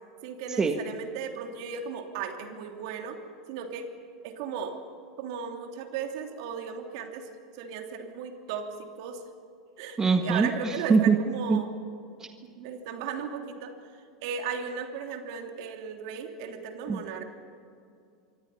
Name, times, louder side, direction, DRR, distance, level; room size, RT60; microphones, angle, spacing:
voice 1, 0.2-3.2 3.5-3.9 4.2-4.8 5.2-7.3 7.5-9.2 9.8-11.7 12.4-13.7 14.2-17.2, right 6 dB, 60° right, 5 dB, 2.9 m, -36 dB
voice 2, 10.0-11.2 11.5-11.6 12.2-12.3 16.9-17.0, right 5 dB, 20° right, 6 dB, 1.7 m, -23 dB
25.5 x 24.0 x 5.6 m, 2.5 s
hypercardioid pair, 85°, 3 cm